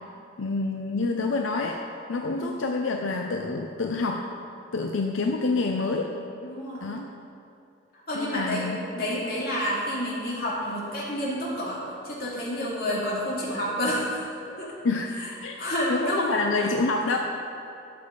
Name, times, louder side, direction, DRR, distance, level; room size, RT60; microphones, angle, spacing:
voice 1, 0.4-1.8 2.1-4.3 4.7-6.1 6.8-7.1 8.1-8.8 14.8-15.1 15.4-15.6 15.9-17.2, left 3 dB, 85° left, 3 dB, 0.6 m, -27 dB
voice 2, 2.2-2.6 6.4-6.8 8.1-8.7 8.9-14.2 14.6-14.7 15.6-16.2, equal, 50° left, -6 dB, 2.6 m, -29 dB
12.0 x 6.9 x 5.2 m, 2.6 s
head